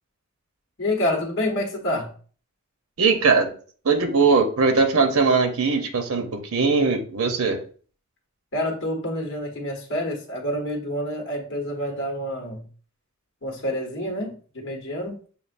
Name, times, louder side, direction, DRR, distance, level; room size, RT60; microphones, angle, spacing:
voice 1, 0.8-2.1 8.5-12.7 13.4-15.2, left 1 dB, 60° left, 1 dB, 1.2 m, -28 dB
voice 2, 3.0-3.5 3.8-7.6, right 4 dB, 90° right, 6 dB, 0.7 m, -20 dB
6.7 x 2.4 x 2.5 m, 0.42 s
head